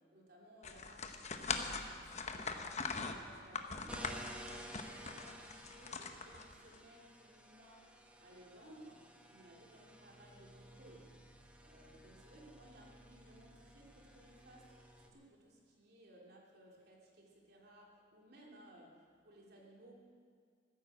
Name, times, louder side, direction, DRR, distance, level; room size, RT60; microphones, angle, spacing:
voice 1, 0.0-11.2 11.6-19.9, right 1 dB, 60° right, -2 dB, 2.8 m, -60 dB
sound 1, 0.6-6.8, left 4 dB, 40° left, 1.0 m, -41 dB
sound 2, 3.9-15.1, equal, 5° right, 1.3 m, -54 dB
15.0 x 10.0 x 7.7 m, 2.1 s
head